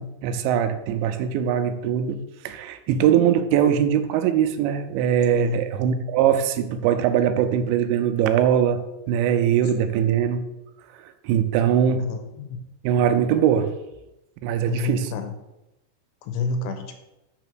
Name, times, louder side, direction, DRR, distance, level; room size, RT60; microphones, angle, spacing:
voice 1, 0.0-2.2 2.4-8.8 9.1-10.4 11.2-12.0 12.8-13.7 14.4-15.1, right 9 dB, 85° right, 8 dB, 2.9 m, -21 dB
voice 2, 12.0-12.6 14.7-15.3 16.2-16.9, left 4 dB, 80° left, 6 dB, 2.8 m, -28 dB
6.8 x 6.1 x 6.1 m, 0.93 s
omnidirectional pair, 5.3 m